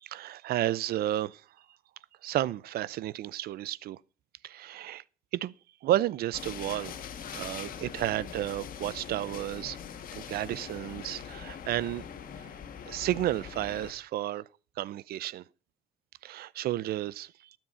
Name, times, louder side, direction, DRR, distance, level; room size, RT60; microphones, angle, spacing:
voice 1, 0.0-1.4 2.2-4.0 4.4-5.0 5.4-5.5 5.8-6.9 7.3-9.8 10.1-12.0 12.4-12.5 12.9-14.4 14.8-15.4 16.2-17.3, right 14 dB, 65° right, 0.6 m, -32 dB
sound 1, 6.3-13.9, left 8 dB, 55° left, 1.7 m, -42 dB
12.5 x 7.4 x 5.6 m
cardioid pair, 110°, 17 cm